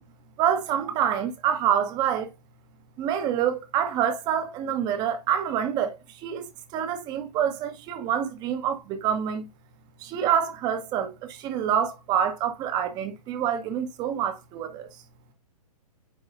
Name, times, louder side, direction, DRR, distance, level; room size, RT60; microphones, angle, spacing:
voice 1, 0.4-2.3 3.0-9.5 10.0-14.9, right 9 dB, 20° right, 1.1 m, -27 dB
9.4 x 4.7 x 2.7 m
figure-of-eight pair, 125°, 21 cm